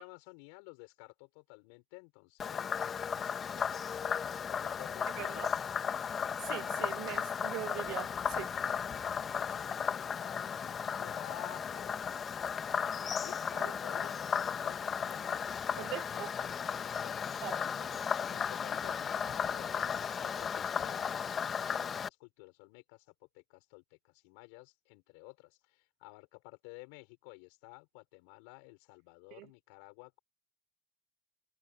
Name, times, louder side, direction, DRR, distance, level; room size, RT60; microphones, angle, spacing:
voice 1, 0.0-5.5 9.3-12.2 13.0-15.8 16.1-17.8 18.3-30.2, left 33 dB, 75° left, 6.0 m, -53 dB
Frog, 2.4-22.1, left 7 dB, 40° left, 1.8 m, -35 dB
voice 2, 5.2-5.5 6.4-8.5 13.5-13.8 15.8-16.3 17.4-17.9 29.4-29.5, right 21 dB, 70° right, 0.7 m, -42 dB
hypercardioid pair, 80°, 0 cm